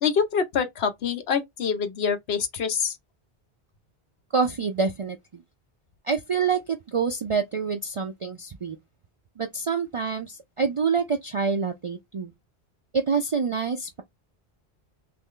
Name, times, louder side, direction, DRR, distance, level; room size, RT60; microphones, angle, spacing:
voice 1, 0.0-3.0, left 6 dB, 75° left, 1.0 m, -25 dB
voice 2, 4.3-5.2 6.1-8.8 9.4-12.3 12.9-14.0, right 5 dB, 55° right, 0.3 m, -26 dB
3.1 x 2.6 x 3.7 m
omnidirectional pair, 1.1 m